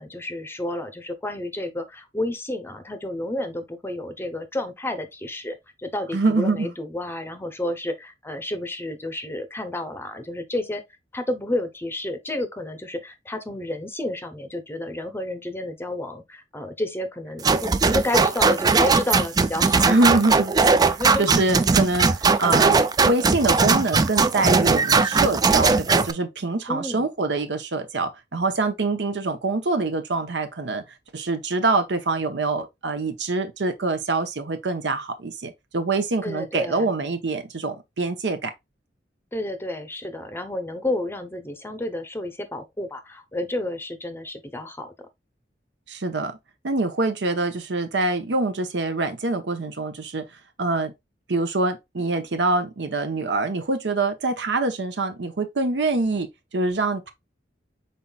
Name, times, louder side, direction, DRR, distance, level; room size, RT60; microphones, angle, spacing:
voice 1, 0.0-10.8 11.1-20.2 20.9-21.3 26.7-27.1 36.2-36.9 39.3-45.1, left 1 dB, 15° left, 0.7 m, -30 dB
voice 2, 6.1-6.7 19.8-20.5 21.2-22.8 23.0-30.8 31.1-38.5 45.9-46.4 46.6-50.3 50.6-50.9 51.3-57.1, right 3 dB, 75° right, 0.8 m, -25 dB
sound 1, 17.4-26.1, right 4 dB, 20° right, 0.3 m, -19 dB
5.5 x 4.1 x 2.3 m
head